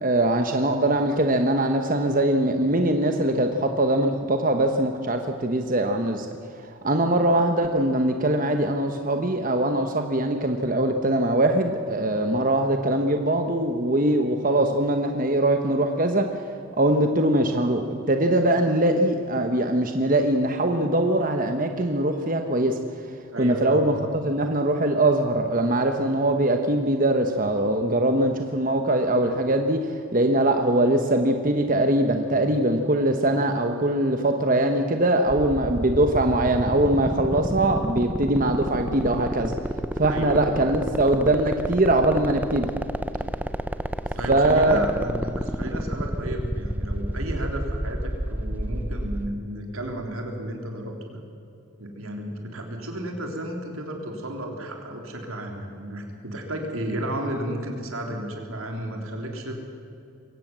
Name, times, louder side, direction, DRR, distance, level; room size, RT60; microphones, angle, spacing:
voice 1, 0.0-6.3 6.6-16.3 16.8-22.8 23.4-24.0 24.2-39.6 40.0-42.7 44.3-45.0, right 1 dB, 40° right, 5 dB, 1.1 m, -22 dB
voice 2, 23.3-23.8 40.1-40.6 44.2-51.2 51.8-59.5, right 1 dB, 85° right, 2 dB, 3.8 m, -33 dB
sound 1, 35.3-49.3, right 1 dB, 10° right, 0.6 m, -28 dB
23.0 x 17.5 x 7.6 m, 2.6 s
head